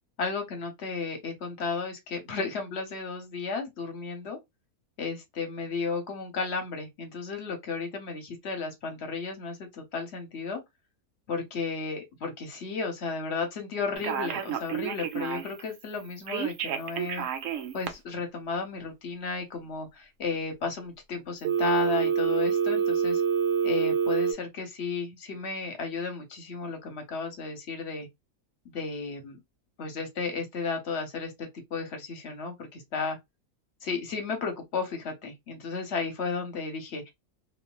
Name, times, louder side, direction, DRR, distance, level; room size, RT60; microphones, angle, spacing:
voice 1, 0.2-4.4 5.0-10.6 11.3-17.2 17.7-23.2 23.6-28.1 28.7-29.4 29.8-33.2 33.8-37.1, left 4 dB, 50° left, 0.9 m, -33 dB
Telephone, 14.0-15.6 16.3-17.9 21.4-24.3, right 7 dB, 65° right, 0.8 m, -27 dB
3.1 x 2.4 x 2.2 m
omnidirectional pair, 1.7 m